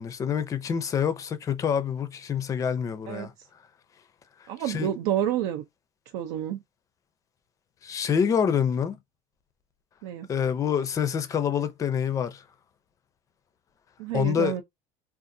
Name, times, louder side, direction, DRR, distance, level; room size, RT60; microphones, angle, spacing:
voice 1, 0.0-3.3 4.7-4.9 7.8-9.0 10.3-12.4 14.1-14.5, left 7 dB, 25° left, 0.5 m, -26 dB
voice 2, 4.5-5.6 6.1-6.6 10.0-10.3 14.0-14.6, right 11 dB, 80° right, 0.6 m, -29 dB
3.7 x 2.4 x 2.6 m
cardioid pair, 160°, 14 cm